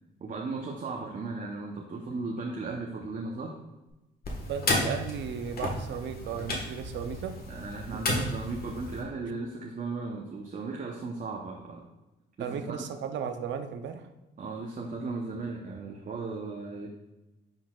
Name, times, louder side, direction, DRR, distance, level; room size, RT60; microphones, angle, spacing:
voice 1, 0.2-3.6 7.5-11.8 12.4-12.8 14.4-16.9, right 3 dB, 40° right, -1 dB, 0.9 m, -36 dB
sound 1, 4.2-9.0, left 2 dB, 50° left, 1.5 m, -33 dB
voice 2, 4.4-7.4 12.4-14.1, right 7 dB, 70° right, 8 dB, 0.6 m, -35 dB
10.5 x 3.9 x 2.4 m, 1.0 s
cardioid pair, 90°, 20 cm